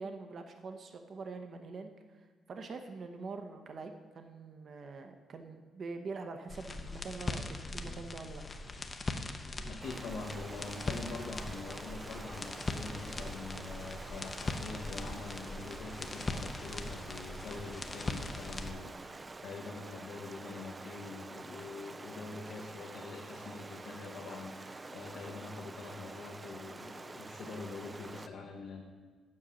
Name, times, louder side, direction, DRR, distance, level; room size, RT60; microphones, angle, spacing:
voice 1, 0.0-1.9 2.5-8.4, right 4 dB, 50° right, 6 dB, 0.8 m, -44 dB
sound 1, 6.5-18.7, left 2 dB, 30° left, 0.6 m, -40 dB
voice 2, 9.4-28.8, left 4 dB, 80° left, -3 dB, 1.1 m, -45 dB
Stream, 9.8-28.3, right 3 dB, 25° right, 0.3 m, -47 dB
7.6 x 5.7 x 6.2 m, 1.5 s
cardioid pair, 90°, 0 cm